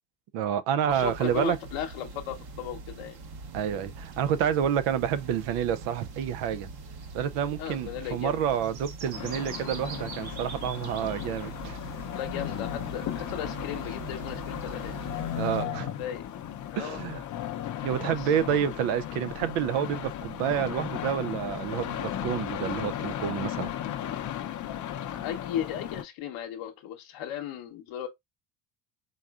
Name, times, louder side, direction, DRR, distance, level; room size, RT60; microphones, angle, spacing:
voice 1, 0.3-1.6 3.5-6.7 7.1-11.8 15.4-15.9 16.8-17.2 17.8-23.7, right 9 dB, 85° right, 0.6 m, -29 dB
voice 2, 0.8-3.2 3.8-3.9 7.6-8.6 12.1-15.2 16.0-16.3 16.7-17.2 18.0-18.3 25.2-28.1, left 10 dB, 70° left, 0.9 m, -36 dB
sound 1, 0.9-15.6, right 3 dB, 50° right, 1.0 m, -42 dB
sound 2, 9.1-26.0, left 11 dB, 40° left, 0.5 m, -36 dB
3.9 x 3.7 x 2.3 m
cardioid pair, 100°, 49 cm